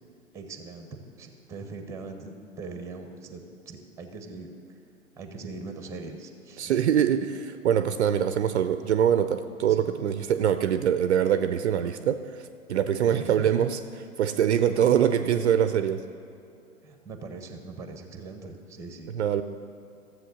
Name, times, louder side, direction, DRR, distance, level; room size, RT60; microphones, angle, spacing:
voice 1, 0.3-4.5 5.2-6.9 9.7-9.9 13.1-13.7 16.8-19.1, right 3 dB, 5° right, 6 dB, 1.0 m, -41 dB
voice 2, 6.6-16.0 19.1-19.4, right 9 dB, 55° right, 11 dB, 0.6 m, -24 dB
13.5 x 7.7 x 6.4 m, 2.6 s
figure-of-eight pair, 120°, 41 cm